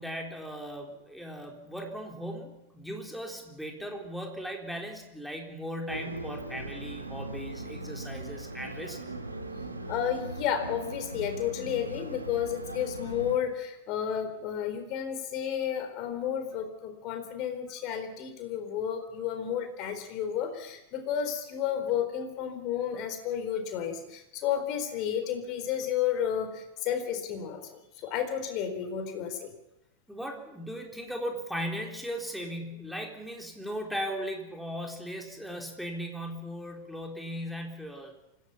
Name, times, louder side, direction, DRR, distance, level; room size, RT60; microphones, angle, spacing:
voice 1, 0.0-9.0 30.1-38.1, equal, ahead, 1 dB, 4.0 m, -37 dB
sound 1, 5.9-13.4, right 2 dB, 80° right, 2.2 m, -39 dB
voice 2, 9.9-27.7 28.0-29.5, left 9 dB, 40° left, 7 dB, 4.1 m, -32 dB
25.0 x 17.0 x 7.0 m, 0.91 s
figure-of-eight pair, 90°, 0 cm